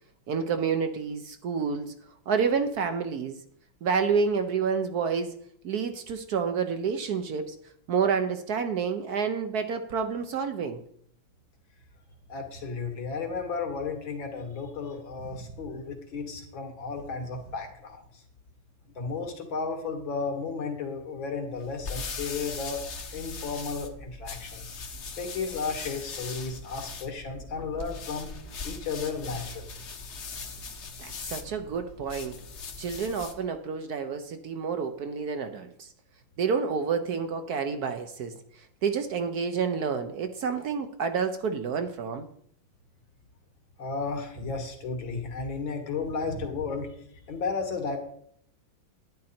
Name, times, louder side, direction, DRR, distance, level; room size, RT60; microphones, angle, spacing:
voice 1, 0.3-1.9 2.3-3.4 3.8-5.4 5.6-7.6 7.9-10.8 31.0-32.4 32.8-35.9 36.4-42.3, right 6 dB, 65° right, 8 dB, 1.1 m, -29 dB
voice 2, 12.3-18.2 19.0-22.8 23.1-24.7 25.2-28.3 28.6-29.7 43.8-46.9 47.3-48.0, left 4 dB, 75° left, 4 dB, 2.6 m, -33 dB
sound 1, 21.5-33.4, left 4 dB, 45° left, 1.0 m, -40 dB
10.5 x 9.9 x 4.3 m, 0.67 s
omnidirectional pair, 2.1 m